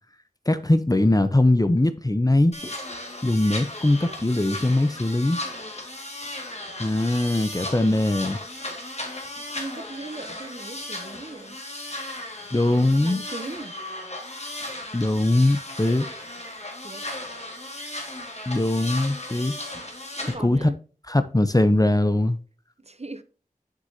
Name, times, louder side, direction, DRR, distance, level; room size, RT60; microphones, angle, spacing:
voice 1, 0.5-2.6 3.2-5.4 6.8-8.4 12.5-13.2 14.9-16.1 18.5-19.5 20.4-20.7 21.1-22.4, left 1 dB, 25° left, 0.7 m, -21 dB
sound 1, 2.5-20.3, left 1 dB, 45° left, 2.0 m, -36 dB
voice 2, 9.4-11.6 12.6-13.8 16.8-17.0 20.2-20.8 22.8-23.2, right 2 dB, 45° right, 0.7 m, -39 dB
7.7 x 6.1 x 2.7 m
wide cardioid pair, 40°, 15 cm